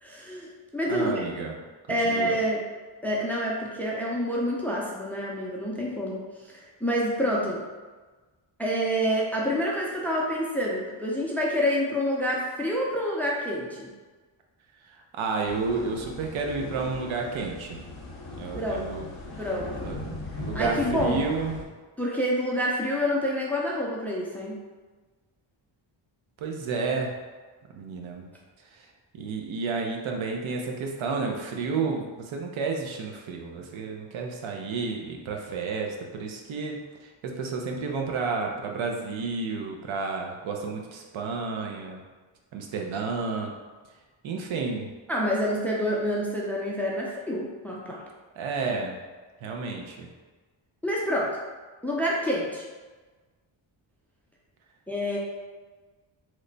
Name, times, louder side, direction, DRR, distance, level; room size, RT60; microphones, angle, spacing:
voice 1, 0.0-1.2 1.9-2.6 3.0-7.6 8.6-13.9 18.5-19.0 19.4-20.0 20.5-21.2 22.0-24.6 45.1-48.0 50.8-51.4 51.8-52.6 54.9-55.2, equal, 5° left, -3 dB, 0.4 m, -28 dB
voice 2, 0.9-1.5 2.0-2.4 14.8-17.8 18.4-19.1 19.8-20.0 20.4-21.6 26.4-27.1 27.7-28.3 28.7-28.9 29.1-42.0 42.5-43.5 44.2-44.9 48.4-49.0 49.4-50.1, right 4 dB, 75° right, 1 dB, 0.6 m, -31 dB
sound 1, 15.4-21.6, left 2 dB, 65° left, 0.8 m, -38 dB
3.1 x 2.1 x 3.8 m, 1.3 s
wide cardioid pair, 115°, 48 cm